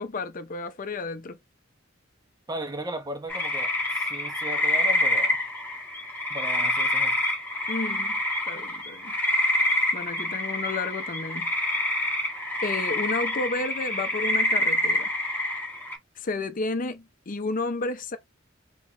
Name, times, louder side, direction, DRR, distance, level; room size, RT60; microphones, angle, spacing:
voice 1, 0.0-1.4 7.7-8.2 8.5-9.1 9.9-11.5 12.6-15.1 16.2-18.2, left 3 dB, 45° left, 0.6 m, -31 dB
voice 2, 2.5-5.4 6.3-7.2, right 1 dB, 20° right, 0.9 m, -36 dB
sound 1, 3.3-16.0, left 1 dB, 10° left, 1.4 m, -27 dB
3.9 x 3.0 x 2.9 m
head